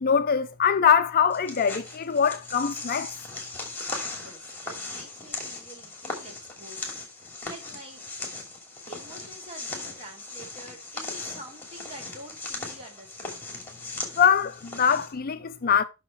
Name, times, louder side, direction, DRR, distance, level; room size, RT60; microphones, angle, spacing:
voice 1, 0.0-3.1 14.2-15.8, left 7 dB, 40° left, 0.5 m, -23 dB
sound 1, 1.3-15.1, left 3 dB, 10° left, 2.7 m, -38 dB
voice 2, 4.1-7.0 7.4-8.0 8.8-13.4, right 1 dB, 30° right, 2.9 m, -47 dB
6.5 x 6.1 x 5.5 m
head